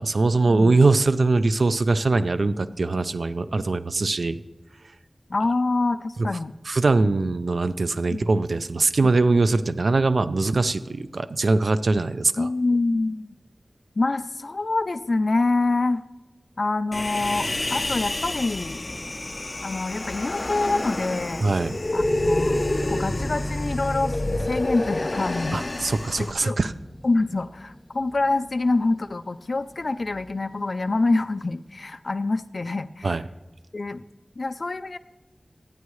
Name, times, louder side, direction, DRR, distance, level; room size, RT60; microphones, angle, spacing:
voice 1, 0.0-4.4 6.7-12.5 21.4-21.8 25.5-26.7 33.0-33.2, right 3 dB, 80° right, 11 dB, 0.5 m, -22 dB
voice 2, 5.3-6.5 8.1-8.3 12.4-13.3 14.0-16.0 16.6-18.8 19.6-21.4 21.9-24.2 24.5-25.9 26.2-26.6 27.0-33.2 33.7-34.0 34.4-35.0, left 3 dB, 65° left, 9 dB, 0.5 m, -26 dB
Human voice, 16.9-26.3, left 2 dB, 45° left, 1.0 m, -29 dB
sound 1, 22.0-29.3 29.7-30.4, left 1 dB, 15° left, 2.4 m, -33 dB
27.0 x 9.3 x 3.2 m, 1.1 s
wide cardioid pair, 65°, 0 cm